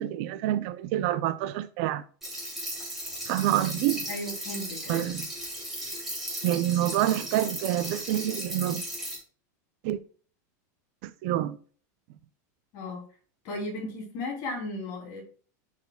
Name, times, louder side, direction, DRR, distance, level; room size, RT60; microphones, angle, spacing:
voice 1, 0.0-2.0 3.3-4.1 4.9-5.3 6.4-8.8 9.8-10.0 11.0-11.6, right 13 dB, 40° right, 0.4 m, -27 dB
sound 1, 2.2-9.1, right 1 dB, 5° right, 2.6 m, -36 dB
voice 2, 4.1-5.1 12.7-13.0 13.4-15.2, left 2 dB, 35° left, 3.0 m, -35 dB
11.5 x 4.9 x 2.3 m
supercardioid pair, 170°, 10 cm